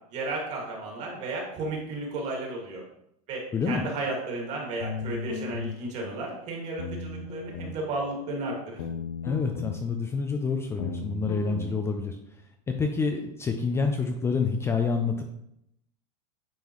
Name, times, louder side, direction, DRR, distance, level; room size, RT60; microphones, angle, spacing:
voice 1, 0.1-2.8 3.3-8.8, right 2 dB, 40° right, -1 dB, 2.2 m, -33 dB
sound 1, 4.8-5.8 6.8-7.8 8.8-9.8 10.8-11.8, left 4 dB, 90° left, 0.8 m, -35 dB
voice 2, 9.2-12.2 12.7-15.2, left 4 dB, 15° left, 4 dB, 0.4 m, -27 dB
9.1 x 3.7 x 3.1 m, 0.78 s
supercardioid pair, 135°, 19 cm